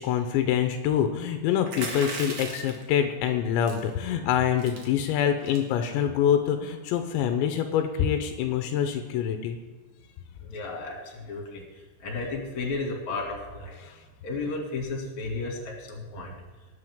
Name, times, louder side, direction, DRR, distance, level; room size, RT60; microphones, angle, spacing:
voice 1, 0.0-9.6, left 9 dB, 85° left, 6 dB, 3.0 m, -25 dB
sound 1, 1.7-2.8 3.6-3.9 4.3-4.4 4.6-4.8 5.4-5.7, right 3 dB, 50° right, 2.2 m, -36 dB
voice 2, 10.4-13.8 14.2-16.3, left 3 dB, 45° left, 0 dB, 3.3 m, -33 dB
18.5 x 9.1 x 3.7 m, 1.3 s
omnidirectional pair, 5.2 m